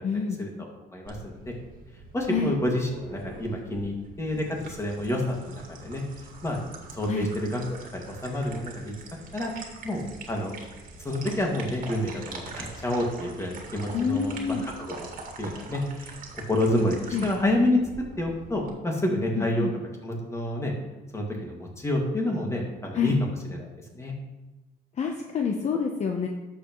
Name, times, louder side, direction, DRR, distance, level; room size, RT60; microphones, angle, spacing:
voice 1, 0.0-0.4 2.3-2.5 7.1-7.3 13.9-14.6 17.1-17.3 19.3-19.7 22.9-23.1 25.0-26.3, left 6 dB, 40° left, 2 dB, 0.9 m, -27 dB
voice 2, 0.9-1.5 2.1-6.0 6.4-6.6 6.9-8.9 9.3-9.5 9.8-10.0 10.3-10.5 11.0-14.9 15.4-16.1 16.5-17.8 18.2-19.7 20.0-20.7 21.1-23.1 23.5-24.1, left 1 dB, 15° left, 0 dB, 2.1 m, -28 dB
sound 1, 1.1-18.7, right 3 dB, 55° right, 1.9 m, -44 dB
11.5 x 7.2 x 3.1 m, 1.1 s
cardioid pair, 110°, 17 cm